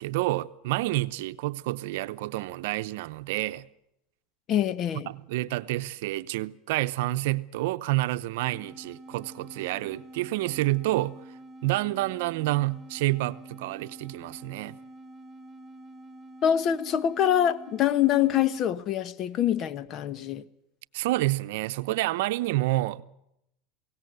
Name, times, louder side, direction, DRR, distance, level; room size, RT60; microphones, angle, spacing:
voice 1, 0.0-3.7 5.1-11.2 11.6-14.8 20.9-23.0, right 18 dB, 75° right, 0.7 m, -28 dB
voice 2, 4.5-5.1 16.4-20.4, left 10 dB, 45° left, 1.2 m, -25 dB
sound 1, 8.4-18.8, right 1 dB, 15° right, 2.3 m, -47 dB
22.0 x 17.5 x 8.0 m
supercardioid pair, 110°, 0 cm